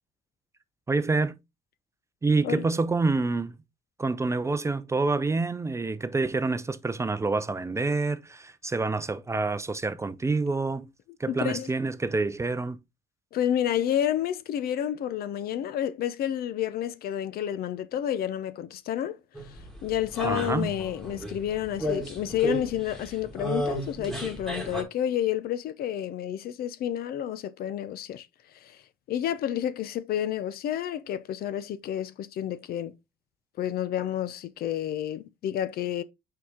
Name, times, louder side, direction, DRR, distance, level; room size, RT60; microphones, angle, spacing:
voice 1, 0.9-1.4 2.2-3.6 4.0-10.9 11.2-12.8 20.2-20.8, right 3 dB, 15° right, 0.5 m, -27 dB
voice 2, 11.3-11.7 13.3-19.2 19.4-28.3 28.6-28.8 29.1-32.9 33.6-36.0, left 10 dB, 65° left, 0.7 m, -30 dB
sound 1, 19.3-24.8, equal, ahead, 2.0 m, -33 dB
6.0 x 4.8 x 3.6 m
cardioid pair, 110°, 17 cm